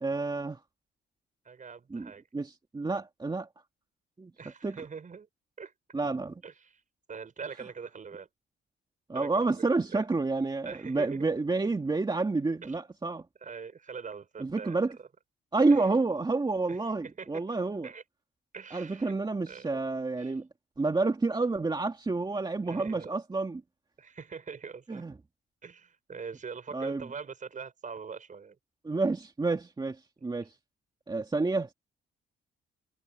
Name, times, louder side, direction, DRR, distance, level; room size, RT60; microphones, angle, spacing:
voice 1, 0.0-0.6 1.9-3.5 4.2-4.3 4.6-4.8 5.9-6.4 9.1-13.3 14.4-15.0 15.5-17.9 18.7-20.5 20.8-23.6 24.9-25.1 26.7-27.0 28.8-30.5 31.1-31.7, right 3 dB, 20° right, 2.3 m, -29 dB
voice 2, 1.5-2.3 4.4-5.3 5.6-5.7 6.4-6.8 7.1-8.3 9.1-10.1 10.6-11.3 12.6-12.8 13.4-15.1 15.7-15.9 16.7-17.4 17.8-18.0 18.5-19.2 19.5-19.7 20.2-20.3 22.7-23.2 24.0-25.0 25.6-28.6 30.4-30.5, right 5 dB, 40° right, 5.4 m, -43 dB
cardioid pair, 90°, 20 cm